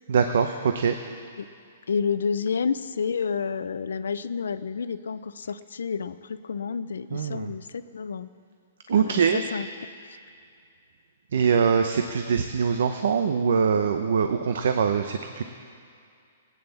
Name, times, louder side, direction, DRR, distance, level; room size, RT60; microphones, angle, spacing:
voice 1, 0.1-0.9 7.1-7.5 8.9-9.4 11.3-15.4, right 6 dB, 70° right, 6 dB, 0.8 m, -23 dB
voice 2, 1.9-8.3 8.9-9.7, left 6 dB, 90° left, 13 dB, 0.6 m, -30 dB
16.5 x 9.5 x 7.1 m, 2.3 s
hypercardioid pair, 150°, 0 cm